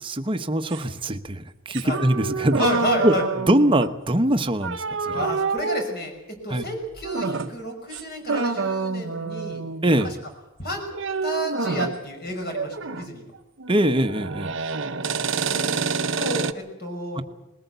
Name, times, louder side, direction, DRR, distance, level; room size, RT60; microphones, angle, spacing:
voice 1, 0.0-2.7 3.0-3.1 3.5-5.2 6.5-6.6 9.8-10.1 13.7-14.5 17.1-17.2, right 1 dB, 25° right, 8 dB, 1.0 m, -22 dB
sound 1, 0.7-0.9 1.7-4.0 4.6-5.9 7.0-7.6 7.9-8.0 8.3-10.2 10.9-12.0 12.5-13.1 13.3-16.5, right 4 dB, 60° right, 0.9 m, -28 dB
voice 2, 2.6-3.2 5.1-6.1 6.4-9.6 10.0-10.2 10.6-10.9 11.2-13.3 15.3-17.2, equal, 50° left, 3 dB, 5.9 m, -30 dB
21.0 x 18.5 x 8.1 m, 0.98 s
head